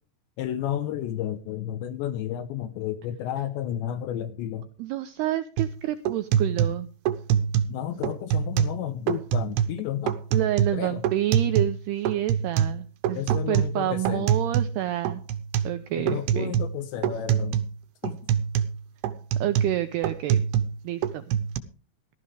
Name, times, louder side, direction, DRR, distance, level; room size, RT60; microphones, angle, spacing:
voice 1, 0.4-4.7 7.7-10.2 10.7-11.0 13.1-14.3 15.9-17.6 18.0-18.2, left 11 dB, 75° left, 3.0 m, -32 dB
voice 2, 4.8-6.9 10.3-15.2 15.6-16.5 19.4-20.4 20.8-21.2, right 14 dB, 90° right, 2.3 m, -28 dB
sound 1, 5.6-5.8 6.1-7.8 8.0-8.8 9.1-9.8 10.1-11.8 12.1-14.8 15.0-15.8 16.1-16.8 17.0-17.7 18.0-20.8 21.0-21.6, right 9 dB, 70° right, 2.6 m, -25 dB
17.0 x 12.5 x 3.3 m
omnidirectional pair, 5.6 m